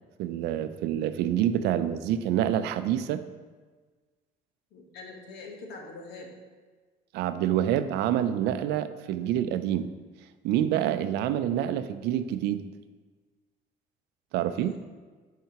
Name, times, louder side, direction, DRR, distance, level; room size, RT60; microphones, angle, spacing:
voice 1, 0.2-3.2 7.1-9.9 10.4-12.6 14.3-14.8, right 11 dB, 85° right, 11 dB, 0.4 m, -27 dB
voice 2, 4.7-6.3 11.1-11.4 14.5-14.8, left 3 dB, 80° left, 2 dB, 1.1 m, -44 dB
9.1 x 5.6 x 2.9 m, 1.4 s
cardioid pair, 110°, 17 cm